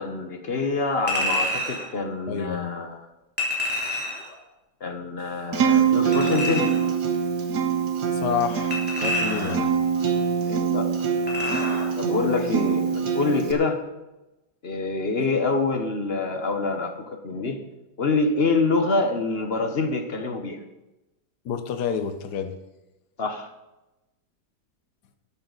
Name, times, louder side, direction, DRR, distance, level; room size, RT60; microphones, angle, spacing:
voice 1, 0.0-3.0 3.9-4.0 4.8-6.7 10.5-11.1 12.0-13.8 14.6-17.6 18.0-20.6 23.2-23.5, left 3 dB, 40° left, 6 dB, 1.2 m, -26 dB
Chink clink, 1.1-1.9 3.4-4.3 6.1-6.9 8.7-9.7 11.3-11.9 12.3-12.4, left 1 dB, 5° left, 3.5 m, -28 dB
voice 2, 2.3-2.7 8.1-9.7 21.4-22.5, left 7 dB, 70° left, 8 dB, 1.6 m, -29 dB
Acoustic guitar, 5.5-13.5, right 6 dB, 70° right, 1.8 m, -24 dB
13.0 x 11.5 x 4.0 m, 1.0 s
omnidirectional pair, 1.9 m